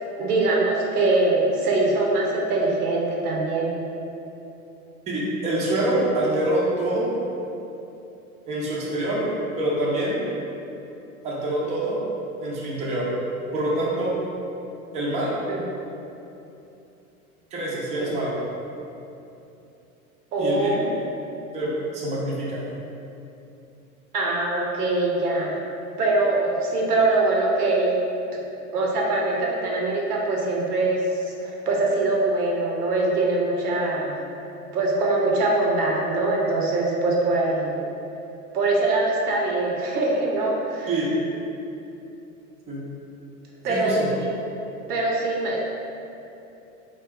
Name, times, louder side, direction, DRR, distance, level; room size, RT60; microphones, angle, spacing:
voice 1, 0.2-3.7 15.5-15.6 18.0-18.1 20.3-20.9 24.1-25.6 26.0-28.0 28.7-34.2 34.7-37.8 38.5-40.9 43.6-44.3 44.9-45.6, right 2 dB, 85° right, -2 dB, 0.7 m, -23 dB
voice 2, 5.1-7.1 8.5-9.2 9.6-10.2 11.2-12.0 12.4-13.1 13.5-14.2 14.9-15.4 17.5-18.4 20.4-20.8 21.5-22.6 40.9-41.1 42.7-42.8 43.7-44.1, right 1 dB, 15° right, -5 dB, 0.5 m, -25 dB
2.7 x 2.3 x 3.3 m, 2.9 s
hypercardioid pair, 95°, 44 cm